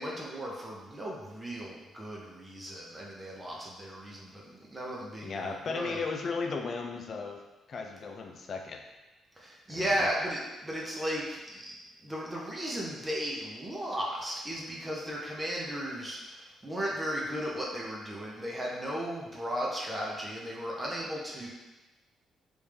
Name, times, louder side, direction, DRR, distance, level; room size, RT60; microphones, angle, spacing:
voice 1, 0.0-6.0 9.4-11.7 12.0-21.5, equal, 20° right, -4 dB, 0.7 m, -35 dB
voice 2, 5.2-7.4 7.7-8.8 9.7-10.1, left 4 dB, 50° left, 3 dB, 0.4 m, -35 dB
3.4 x 2.6 x 3.3 m, 1.1 s
cardioid pair, 90°, 0 cm